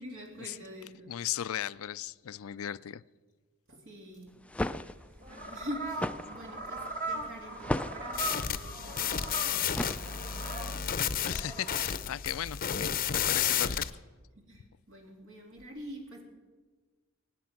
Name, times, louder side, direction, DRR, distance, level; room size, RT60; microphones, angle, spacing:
voice 1, 0.0-1.1 3.7-4.4 5.3-10.9 14.5-16.2, equal, 65° right, 1 dB, 2.8 m, -45 dB
voice 2, 1.1-3.0 11.2-13.8, left 10 dB, 80° left, 17 dB, 0.4 m, -37 dB
sound 1, 4.3-10.6, left 1 dB, 5° left, 0.4 m, -37 dB
sound 2, 5.0-11.9, right 2 dB, 45° right, 2.4 m, -40 dB
sound 3, 8.1-13.9, left 8 dB, 45° left, 0.7 m, -32 dB
24.0 x 9.6 x 5.9 m, 1.3 s
head